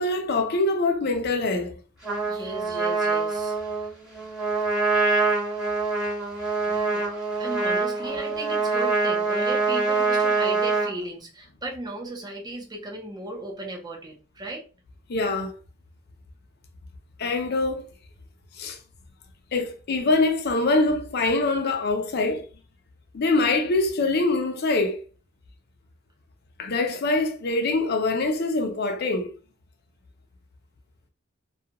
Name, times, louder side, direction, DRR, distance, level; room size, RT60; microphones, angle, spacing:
voice 1, 0.0-1.7 8.0-8.1 15.1-15.5 17.2-17.9 18.6-18.8 19.5-22.4 23.1-25.0 26.6-29.3, left 2 dB, 55° left, 0.5 m, -24 dB
Trumpet, 2.0-10.9, right 3 dB, 5° right, 1.2 m, -25 dB
voice 2, 2.2-3.9 6.7-7.1 7.4-14.7, right 2 dB, 20° right, 0.7 m, -36 dB
2.3 x 2.3 x 2.8 m
head